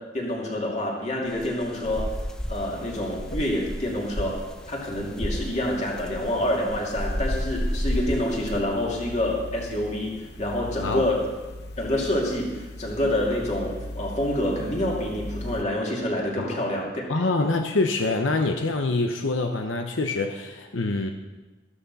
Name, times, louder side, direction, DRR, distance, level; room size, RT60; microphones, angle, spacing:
voice 1, 0.1-2.2 2.5-11.3 11.8-17.0 17.4-17.5, left 1 dB, 35° left, -2 dB, 2.7 m, -27 dB
sound 1, 1.3-2.7 3.1-4.5 5.0-6.3 6.7-8.6, equal, 5° left, 0.5 m, -31 dB
sound 2, 1.9-15.6, left 1 dB, 55° left, 1.0 m, -40 dB
voice 2, 16.4-16.7 17.1-21.1, left 3 dB, 90° left, 4 dB, 0.8 m, -25 dB
14.0 x 12.5 x 4.1 m, 1.1 s
head